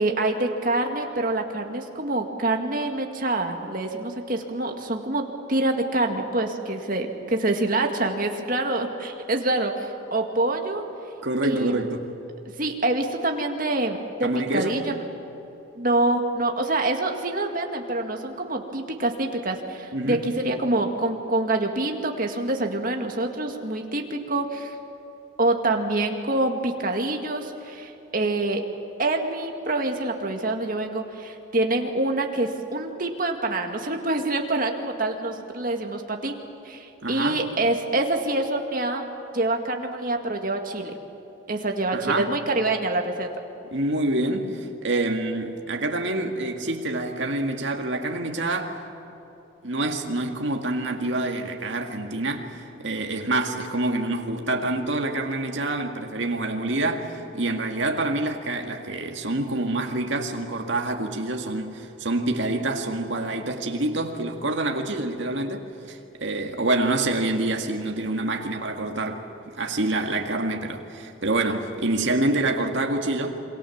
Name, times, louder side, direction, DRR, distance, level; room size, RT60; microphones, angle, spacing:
voice 1, 0.0-10.8 11.4-11.8 12.6-15.0 15.8-24.8 25.4-28.6 29.0-36.3 36.6-39.0 39.3-40.9 41.5-43.3, right 2 dB, 45° right, 2.0 m, -26 dB
voice 2, 11.2-12.1 14.2-14.8 19.9-20.3 37.0-37.4 41.9-42.3 43.7-48.7 49.6-73.4, right 2 dB, 65° right, 2.0 m, -27 dB
27.5 x 23.5 x 7.2 m
head